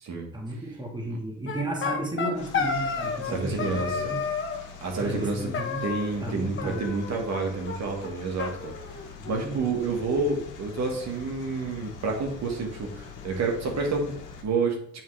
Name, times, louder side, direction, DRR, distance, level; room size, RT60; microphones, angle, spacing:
voice 1, 0.3-4.2 4.6-4.7 5.0-5.8 6.2-6.9 9.2-9.7, right 1 dB, 15° right, 0 dB, 1.6 m, -34 dB
sound 1, 1.5-3.3 3.6-4.6 5.5-6.3 6.6-7.4 7.7-7.8 8.0-8.1 8.4-9.4, left 5 dB, 40° left, 1.2 m, -31 dB
sound 2, 2.3-14.4, left 5 dB, 90° left, 1.3 m, -44 dB
voice 2, 3.2-3.9 4.8-5.5 5.8-8.7 9.3-14.2 14.4-14.8, right 3 dB, 65° right, 1 dB, 1.5 m, -29 dB
8.6 x 3.6 x 3.3 m, 0.63 s
cardioid pair, 90°, 30 cm